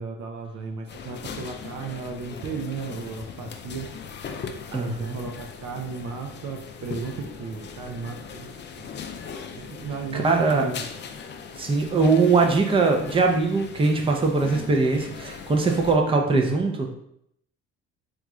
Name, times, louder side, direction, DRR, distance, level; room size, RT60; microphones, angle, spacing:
voice 1, 0.0-3.9 4.7-8.5 8.8-9.0 9.7-10.9, right 4 dB, 75° right, 4 dB, 0.6 m, -35 dB
sound 1, 0.9-16.0, left 6 dB, 40° left, 0.4 m, -39 dB
voice 2, 4.7-5.2 10.1-10.6 11.6-16.9, right 4 dB, 20° right, 2 dB, 0.5 m, -21 dB
3.1 x 2.4 x 3.6 m, 0.73 s
cardioid pair, 90°, 30 cm